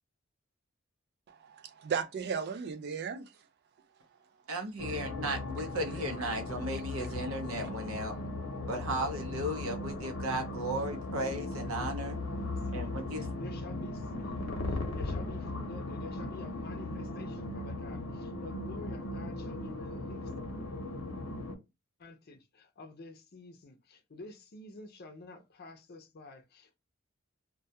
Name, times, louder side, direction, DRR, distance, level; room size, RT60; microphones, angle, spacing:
voice 1, 1.3-3.3, right 6 dB, 50° right, 0.3 m, -35 dB
voice 2, 4.5-8.2 8.7-12.2 12.7-13.3, right 1 dB, 85° right, 0.7 m, -35 dB
sound 1, 4.8-21.6, left 2 dB, 85° left, 0.7 m, -38 dB
voice 3, 12.7-20.3 22.0-26.8, left 3 dB, 50° left, 0.5 m, -49 dB
2.2 x 2.2 x 2.7 m
head